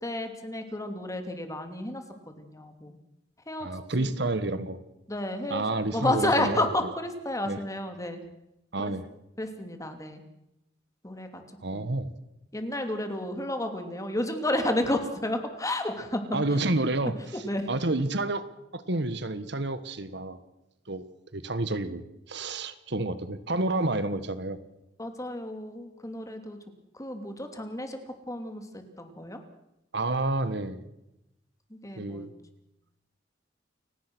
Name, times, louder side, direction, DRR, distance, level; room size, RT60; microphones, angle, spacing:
voice 1, 0.0-3.0 3.5-3.7 4.0-4.1 5.1-5.6 5.9-8.2 8.8-8.9 9.4-10.2 11.0-11.4 11.7-11.9 12.5-16.4 17.4-17.7 25.0-26.6 26.9-28.0 28.3-29.4 31.7-32.3, left 1 dB, 20° left, 6 dB, 2.8 m, -31 dB
voice 2, 3.6-4.8 5.5-6.7 7.5-7.6 8.7-9.0 11.6-12.1 16.3-17.1 17.7-18.5 18.7-20.4 20.9-21.0 21.3-22.0 22.3-24.6 29.9-30.8 32.0-32.3, right 2 dB, 65° right, 12 dB, 1.5 m, -29 dB
29.5 x 17.0 x 6.2 m, 0.89 s
head